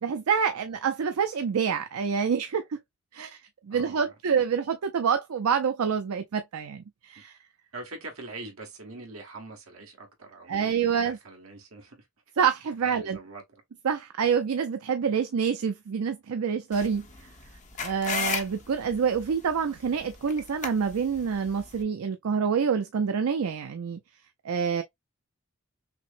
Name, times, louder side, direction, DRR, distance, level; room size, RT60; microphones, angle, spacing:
voice 1, 0.0-2.8 3.1-3.4 3.6-7.4 10.5-11.2 12.4-13.2 13.8-17.1 17.8-24.0 24.4-24.8, right 6 dB, 85° right, 0.4 m, -27 dB
voice 2, 3.7-4.1 7.1-7.2 7.7-12.1 12.8-13.6, right 2 dB, 70° right, 1.4 m, -43 dB
sound 1, 16.7-21.8, left 5 dB, 35° left, 0.8 m, -36 dB
5.9 x 2.0 x 2.5 m
head